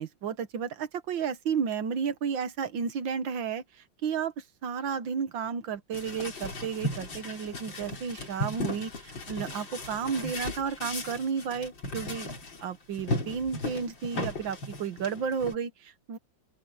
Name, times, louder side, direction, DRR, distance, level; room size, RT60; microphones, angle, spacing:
voice 1, 0.0-12.3 12.6-16.2, right 6 dB, 90° right, 2.0 m, -32 dB
sound 1, 5.9-12.6 12.9-15.6, left 2 dB, 80° left, 4.7 m, -36 dB
open air
omnidirectional pair, 2.0 m